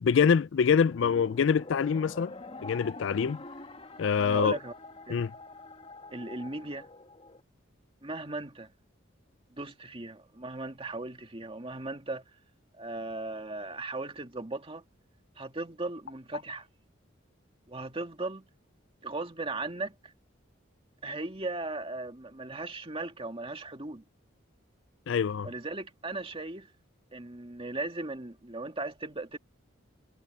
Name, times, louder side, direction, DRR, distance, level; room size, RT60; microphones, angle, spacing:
voice 1, 0.0-2.3 2.6-3.4 4.0-4.6 5.1-5.3 25.1-25.5, left 6 dB, 70° left, 0.4 m, -25 dB
sound 1, 0.9-7.4, left 2 dB, 30° left, 2.1 m, -46 dB
voice 2, 4.2-4.7 5.1-5.2 6.1-6.9 8.0-8.7 9.5-12.2 12.8-14.8 15.4-16.7 17.7-18.5 19.0-20.1 21.0-24.0 25.4-26.7 27.1-29.4, right 2 dB, 30° right, 2.2 m, -37 dB
head